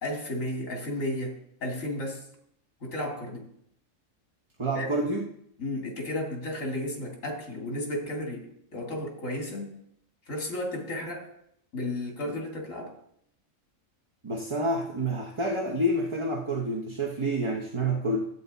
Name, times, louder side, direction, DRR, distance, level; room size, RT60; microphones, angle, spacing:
voice 1, 0.0-2.3 2.8-3.5 4.7-4.9 5.6-9.8 10.3-11.3 11.7-13.0, left 1 dB, 80° left, 1 dB, 2.6 m, -33 dB
voice 2, 4.6-5.2 14.2-18.3, right 1 dB, 25° right, -1 dB, 0.9 m, -28 dB
12.5 x 8.5 x 4.1 m, 0.71 s
omnidirectional pair, 1.4 m